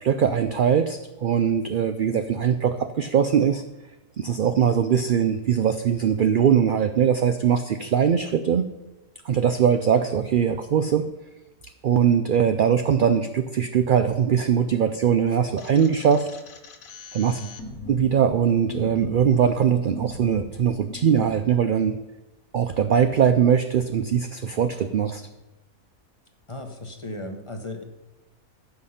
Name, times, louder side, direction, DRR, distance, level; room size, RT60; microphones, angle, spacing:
voice 1, 0.0-3.6 4.2-8.7 9.2-11.1 11.8-16.3 17.1-17.4 17.9-22.0 22.5-25.3, right 8 dB, 70° right, 9 dB, 0.5 m, -21 dB
sound 1, 15.6-21.4, left 1 dB, 75° left, 1.5 m, -40 dB
voice 2, 17.2-17.5 26.5-27.8, left 1 dB, 25° left, 4 dB, 1.0 m, -36 dB
15.0 x 6.0 x 5.7 m, 1.0 s
omnidirectional pair, 1.5 m